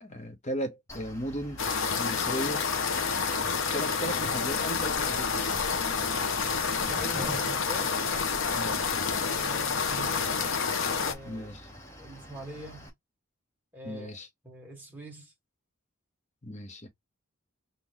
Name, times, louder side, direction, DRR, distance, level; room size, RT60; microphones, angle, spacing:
voice 1, 0.0-1.7 2.0-2.6 3.7-5.6 8.5-8.8 11.2-11.7 13.8-14.3 16.4-16.9, equal, 35° left, 1.1 m, -36 dB
Mechanical fan, 0.9-12.9, equal, 15° left, 1.2 m, -47 dB
sound 1, 1.6-11.1, left 5 dB, 65° left, 0.9 m, -29 dB
Zipper (clothing), 4.3-8.6 9.1-9.2 9.4-9.5 9.7-10.0, right 1 dB, 30° right, 2.3 m, -44 dB
voice 2, 7.0-7.9 9.2-10.4 10.8-11.5 12.0-12.9 13.7-14.2 14.4-15.3, equal, 10° right, 1.8 m, -43 dB
5.6 x 2.5 x 3.1 m
head